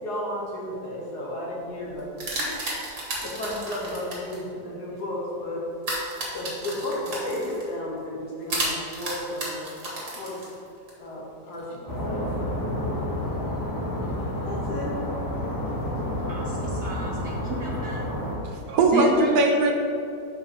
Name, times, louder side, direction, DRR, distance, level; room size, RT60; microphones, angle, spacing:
voice 1, 0.0-2.8 3.2-5.6 6.3-9.7 10.2-10.3 11.0-12.6 14.4-14.9, left 1 dB, 60° left, -4 dB, 1.6 m, -33 dB
sound 1, 1.9-4.4 5.8-7.7 8.5-10.9, right 2 dB, 45° right, 1.8 m, -32 dB
sound 2, 11.9-18.4, left 1 dB, 20° left, 0.5 m, -29 dB
voice 2, 16.3-18.0 18.9-19.3, right 3 dB, 80° right, -2 dB, 0.6 m, -32 dB
voice 3, 18.4-19.7, right 2 dB, 60° right, 3 dB, 1.2 m, -20 dB
5.0 x 4.5 x 6.1 m, 2.6 s
omnidirectional pair, 2.0 m